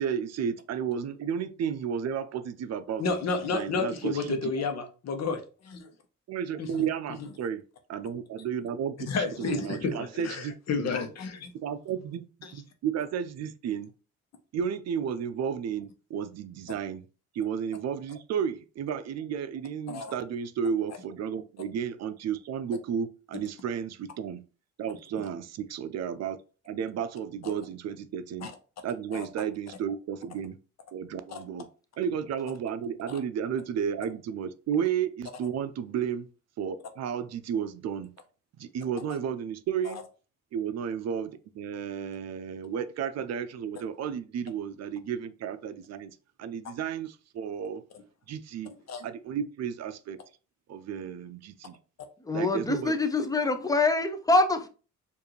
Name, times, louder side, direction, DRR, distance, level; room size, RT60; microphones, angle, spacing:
voice 1, 0.0-4.6 6.3-7.6 7.9-10.9 11.5-12.2 12.5-13.9 14.5-17.0 17.3-24.4 24.8-26.4 26.7-28.5 28.8-30.6 30.9-31.7 32.0-36.3 36.6-38.1 38.6-40.0 40.5-46.1 46.4-47.8 48.3-48.7 49.0-50.2 50.7-51.8 52.3-52.9, right 8 dB, 60° right, 0.5 m, -33 dB
voice 2, 3.0-5.9 6.6-6.8 9.1-11.5 12.4-12.5 19.9-20.1 28.4-28.5 29.1-29.3 31.3-31.4 33.1-33.2 39.8-39.9 48.9-49.0, left 4 dB, 60° left, 0.9 m, -31 dB
voice 3, 52.2-54.7, left 2 dB, 10° left, 0.6 m, -25 dB
4.6 x 2.6 x 3.1 m
cardioid pair, 90°, 30 cm